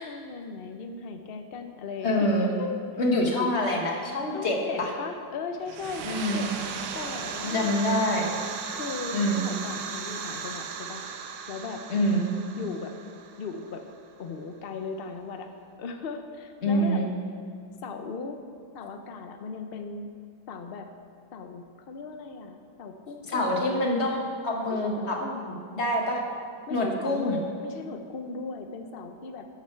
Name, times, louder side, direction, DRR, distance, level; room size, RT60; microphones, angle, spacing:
voice 1, 0.0-2.3 2.5-2.8 3.4-3.5 4.3-6.5 6.9-7.8 8.7-11.0 11.5-11.8 12.6-12.9 13.4-13.8 14.2-15.5 15.8-17.0 17.8-18.4 18.7-20.1 20.5-20.9 21.3-23.5 24.7-25.5 26.7-29.5, left 4 dB, 75° left, 6 dB, 0.5 m, -37 dB
voice 2, 2.0-2.5 3.0-4.9 6.0-6.4 7.4-8.3 9.1-9.4 11.9-12.3 16.6-17.1 23.2-24.2 24.4-25.2 25.5-26.2 26.7-27.4, left 1 dB, 40° left, 0 dB, 1.7 m, -26 dB
sound 1, 5.6-14.2, right 6 dB, 85° right, 1.5 m, -37 dB
13.0 x 10.0 x 4.5 m, 2.2 s
omnidirectional pair, 2.0 m